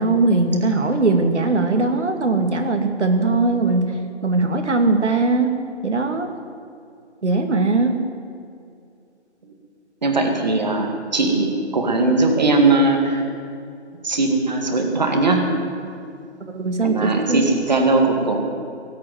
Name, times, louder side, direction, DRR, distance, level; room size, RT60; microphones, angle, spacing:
voice 1, 0.0-3.9 4.2-5.5 5.8-6.3 7.2-8.0 16.5-17.5, right 3 dB, 80° right, 5 dB, 2.4 m, -20 dB
voice 2, 10.0-13.2 14.0-15.4 16.8-18.4, right 3 dB, 40° right, 3 dB, 2.0 m, -19 dB
18.0 x 8.6 x 9.4 m, 2.4 s
hypercardioid pair, 175°, 34 cm